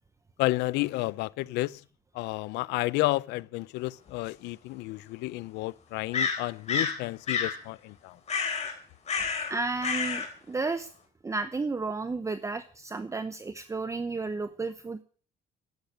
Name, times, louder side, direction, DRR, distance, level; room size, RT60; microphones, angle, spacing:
voice 1, 0.4-1.8 2.2-8.1, left 20 dB, 90° left, 0.6 m, -31 dB
sound 1, 4.1-4.2 6.1-7.0 7.3-7.6 8.3-8.7 9.1-9.5 9.8-10.3, left 5 dB, 40° left, 3.9 m, -29 dB
voice 2, 9.5-10.9 11.2-15.0, right 3 dB, 20° right, 0.8 m, -32 dB
12.0 x 8.8 x 9.4 m
cardioid pair, 110°, 17 cm